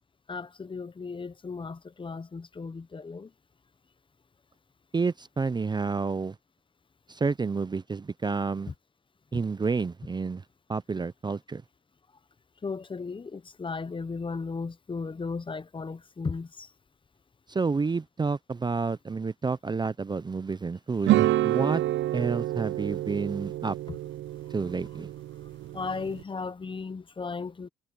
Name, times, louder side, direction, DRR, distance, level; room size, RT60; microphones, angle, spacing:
voice 1, 0.3-3.3 8.7-8.8 12.6-16.7 23.9-24.0 25.4-27.7, left 4 dB, 25° left, 0.8 m, -36 dB
voice 2, 4.9-6.4 7.1-8.7 9.3-10.4 10.7-11.6 17.5-21.8 22.1-23.8 24.5-25.1, right 4 dB, 20° right, 0.6 m, -29 dB
sound 1, 21.0-26.2, right 15 dB, 70° right, 0.5 m, -28 dB
cardioid pair, 90°, 20 cm